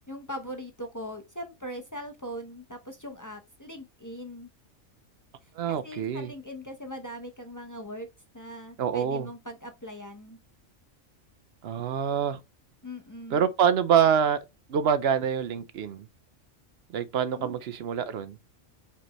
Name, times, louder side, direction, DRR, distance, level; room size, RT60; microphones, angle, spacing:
voice 1, 0.1-4.5 5.7-8.1 8.3-10.4 12.8-13.4 17.4-17.6, equal, 20° left, 0.5 m, -40 dB
voice 2, 5.6-6.3 8.8-9.3 11.6-12.4 13.3-14.4 14.7-16.1 16.9-18.4, right 8 dB, 60° right, 0.7 m, -25 dB
5.1 x 3.4 x 2.9 m
omnidirectional pair, 1.4 m